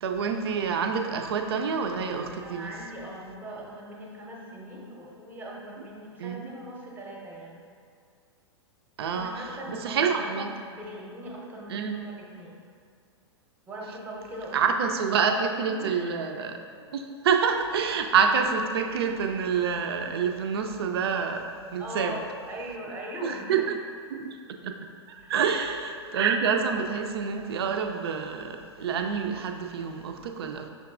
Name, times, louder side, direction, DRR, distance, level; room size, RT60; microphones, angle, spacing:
voice 1, 0.0-2.7 6.2-6.5 9.0-10.5 11.7-12.0 14.5-16.6 16.9-21.4 21.7-22.1 23.2-23.8 24.1-24.4 24.6-24.8 25.3-30.7, right 6 dB, 60° right, 5 dB, 0.4 m, -27 dB
voice 2, 2.4-7.7 9.0-10.4 10.7-12.6 13.7-14.7 15.1-15.4 15.8-16.1 21.8-23.7 25.2-25.4, equal, 10° right, -2 dB, 0.7 m, -40 dB
5.7 x 3.6 x 2.4 m, 2.3 s
figure-of-eight pair, 100°, 15 cm